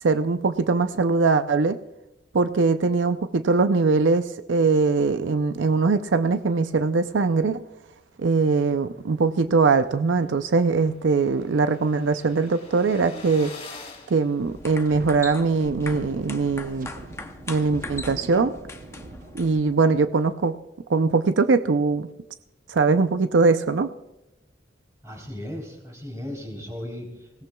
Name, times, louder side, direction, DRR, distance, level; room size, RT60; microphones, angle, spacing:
voice 1, 0.0-1.8 2.3-7.6 8.2-13.5 14.1-16.9 17.5-18.6 19.3-20.6 20.9-22.1 22.7-23.9, right 4 dB, 90° right, 10 dB, 0.5 m, -21 dB
sound 1, 9.6-9.7 10.0-10.1 10.3-15.2, left 4 dB, 35° left, 2.7 m, -45 dB
sound 2, 14.4-19.7, left 2 dB, 15° left, 0.7 m, -40 dB
Wind, 14.4-20.0, right 2 dB, 45° right, 0.8 m, -42 dB
voice 2, 25.0-27.4, left 1 dB, 15° right, 1 dB, 3.6 m, -36 dB
25.5 x 17.0 x 2.3 m, 0.91 s
head